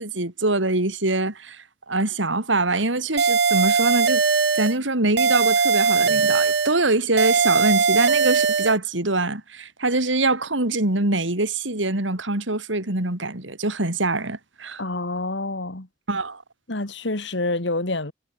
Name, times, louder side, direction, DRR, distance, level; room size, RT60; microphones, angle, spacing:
voice 1, 0.0-4.2 4.5-14.8 16.1-16.4, right 2 dB, 85° right, 3.6 m, -24 dB
sound 1, 3.2-4.8 5.2-6.8 7.2-8.8, right 5 dB, 60° right, 1.0 m, -20 dB
voice 2, 14.8-15.9 16.7-18.1, left 2 dB, 70° left, 2.4 m, -27 dB
head